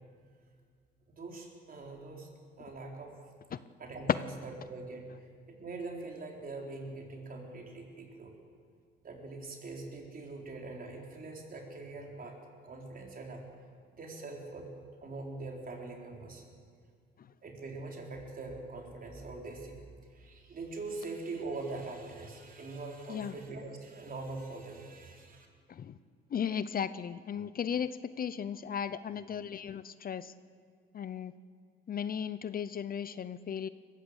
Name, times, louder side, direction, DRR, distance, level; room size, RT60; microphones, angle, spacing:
voice 1, 1.1-2.3 2.6-3.1 3.8-4.1 4.4-5.1 5.5-8.3 9.0-12.4 12.6-13.4 13.9-14.7 15.0-16.4 17.4-19.8 20.1-25.5, right 3 dB, 45° right, 1 dB, 4.4 m, -43 dB
voice 2, 26.3-30.3 30.9-31.3 31.9-33.7, left 8 dB, 45° left, 15 dB, 0.7 m, -36 dB
21.0 x 15.0 x 8.1 m, 2.1 s
cardioid pair, 90°, 20 cm